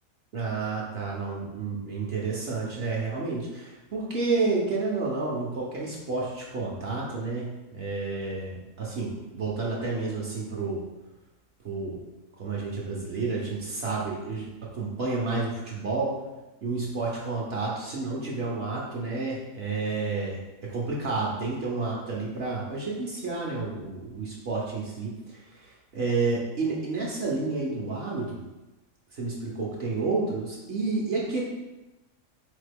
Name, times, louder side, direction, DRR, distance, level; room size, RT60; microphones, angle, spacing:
voice 1, 0.3-10.8 11.6-12.0 12.4-16.2 16.6-20.4 20.7-28.4 29.1-31.4, right 3 dB, 55° right, -4 dB, 0.9 m, -30 dB
3.9 x 3.6 x 3.4 m, 1.1 s
omnidirectional pair, 1.4 m